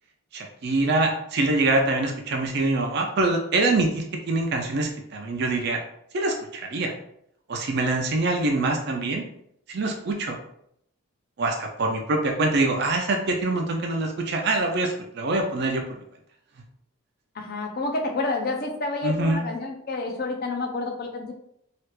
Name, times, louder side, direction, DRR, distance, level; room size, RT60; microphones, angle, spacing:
voice 1, 0.3-5.8 6.1-6.9 7.5-9.2 9.7-10.4 11.4-15.8 19.0-19.4, right 2 dB, 50° right, 2 dB, 0.4 m, -24 dB
voice 2, 17.3-21.3, left 3 dB, 45° left, 3 dB, 0.5 m, -29 dB
3.2 x 2.4 x 3.1 m, 0.72 s
head